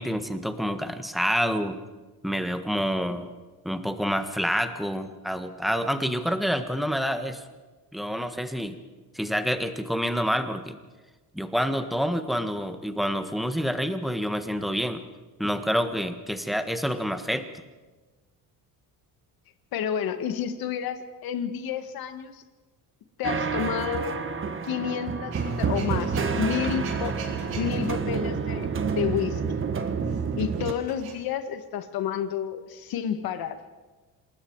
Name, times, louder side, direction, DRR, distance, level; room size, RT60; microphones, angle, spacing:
voice 1, 0.0-1.8 2.2-3.3 3.6-7.4 7.9-8.8 9.1-10.8 11.3-15.0 15.4-17.5, equal, ahead, 8 dB, 1.5 m, -27 dB
voice 2, 19.7-22.4 23.2-24.2 24.6-27.2 27.5-29.6 30.4-33.6, left 9 dB, 65° left, 9 dB, 1.8 m, -30 dB
sound 1, 23.2-30.7, right 5 dB, 30° right, 1.4 m, -28 dB
Male speech man speaking / Vehicle / Engine starting, 25.3-31.2, right 5 dB, 70° right, 5.0 m, -45 dB
26.5 x 20.5 x 4.8 m, 1.2 s
cardioid pair, 130°, 38 cm